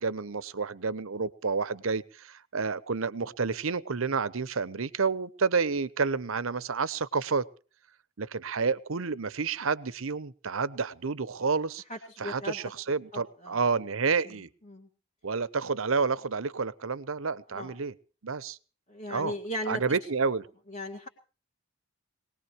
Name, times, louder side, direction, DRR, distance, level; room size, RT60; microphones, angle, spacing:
voice 1, 0.0-7.5 8.2-11.8 12.2-14.5 15.2-17.9 18.2-18.6 19.1-19.3 19.7-20.5, right 5 dB, 70° right, 18 dB, 0.8 m, -29 dB
voice 2, 11.9-12.6 13.1-13.6 14.7-14.9 17.5-17.7 18.9-20.0 20.7-21.1, equal, 35° left, -1 dB, 2.0 m, -37 dB
22.5 x 18.5 x 3.1 m, 0.37 s
head